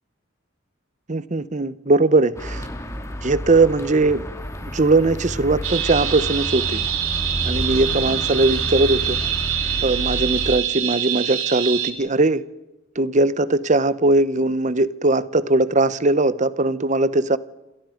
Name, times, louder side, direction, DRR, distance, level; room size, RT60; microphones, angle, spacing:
voice 1, 1.1-2.7 3.2-4.3 4.6-6.8 7.4-9.2 9.8-12.4 13.0-17.4, right 2 dB, 35° right, 0.9 m, -20 dB
sound 1, 2.4-10.6, equal, 15° left, 2.5 m, -30 dB
sound 2, 5.6-11.9, right 10 dB, 85° right, 3.2 m, -25 dB
28.5 x 28.0 x 5.2 m
head